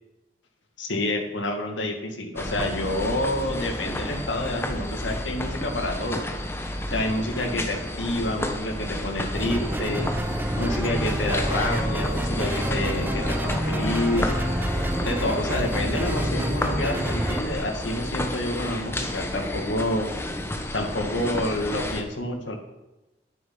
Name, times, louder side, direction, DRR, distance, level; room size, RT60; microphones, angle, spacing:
voice 1, 0.8-6.2 6.9-10.1 10.6-14.4 15.0-20.1 20.7-22.6, left 1 dB, 90° left, 3 dB, 2.2 m, -28 dB
sound 1, 2.4-22.0, left 1 dB, 15° left, 1.2 m, -31 dB
sound 2, 9.3-17.4, right 1 dB, 10° right, 0.7 m, -28 dB
sound 3, 11.2-17.0, equal, 55° right, 5.2 m, -38 dB
11.5 x 9.4 x 6.0 m, 1.0 s
head